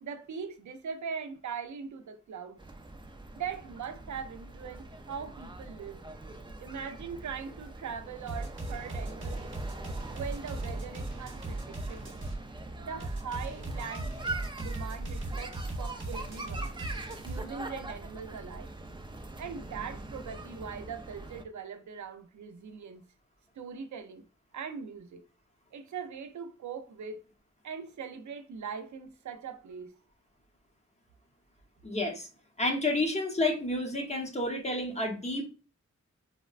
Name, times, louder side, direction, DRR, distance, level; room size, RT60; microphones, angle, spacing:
voice 1, 0.0-2.6 3.3-6.0 6.6-9.4 10.1-12.2 12.8-14.1 14.6-16.7 17.2-18.7 19.4-23.0 23.5-24.2 24.5-25.2 25.7-27.2 27.6-30.0, right 6 dB, 80° right, 0.5 m, -41 dB
sound 1, 2.6-21.4, right 2 dB, 15° right, 0.4 m, -43 dB
sound 2, 8.3-12.4 13.0-17.4, right 2 dB, 45° right, 1.0 m, -37 dB
voice 2, 31.8-32.3 32.6-35.5, left 2 dB, 25° left, 0.8 m, -30 dB
4.1 x 2.1 x 2.3 m
wide cardioid pair, 100°, 29 cm